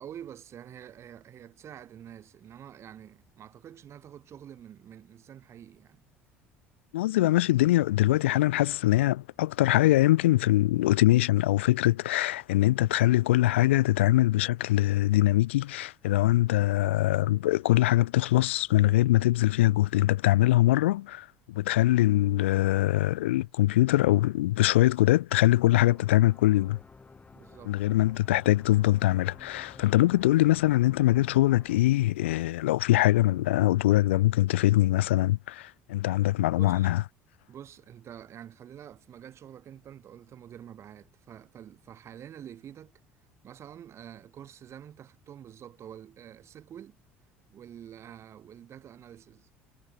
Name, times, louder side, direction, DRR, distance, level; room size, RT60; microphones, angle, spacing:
voice 1, 0.0-6.0 27.3-27.8 36.5-36.9 37.5-42.9 43.4-47.0 47.5-49.5, right 10 dB, 45° right, 5.3 m, -47 dB
voice 2, 6.9-26.8 27.7-37.0, left 16 dB, 75° left, 0.7 m, -23 dB
sound 1, 25.5-31.8, left 4 dB, 20° left, 2.6 m, -52 dB
hypercardioid pair, 60°, 6 cm